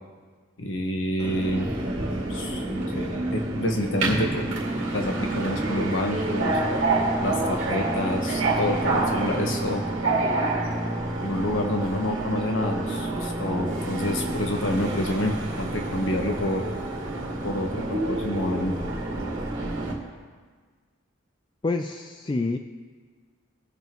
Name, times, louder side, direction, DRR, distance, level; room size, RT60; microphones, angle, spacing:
voice 1, 0.6-1.7 2.3-4.5 4.9-6.6 7.2-9.8 11.2-16.7 17.4-18.7, left 1 dB, 75° left, 2 dB, 1.3 m, -28 dB
Subway metro underground, 1.2-19.9, right 2 dB, 75° right, 2.2 m, -28 dB
voice 2, 21.6-22.6, left 3 dB, 25° left, 5 dB, 0.4 m, -27 dB
20.0 x 7.0 x 3.0 m, 1.5 s
head